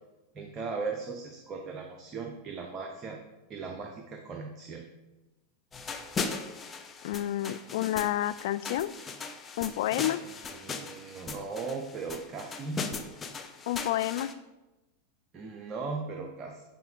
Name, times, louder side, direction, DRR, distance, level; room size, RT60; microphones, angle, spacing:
voice 1, 0.3-3.2 3.5-4.8 10.2-12.9 15.3-16.6, right 4 dB, 30° right, 3 dB, 0.8 m, -38 dB
sound 1, 5.7-14.3, left 4 dB, 20° left, 0.7 m, -38 dB
voice 2, 7.0-8.9 9.6-10.2 13.7-14.3, left 13 dB, 60° left, 14 dB, 0.3 m, -29 dB
9.4 x 4.5 x 3.5 m, 1.0 s
figure-of-eight pair, 90°, 0 cm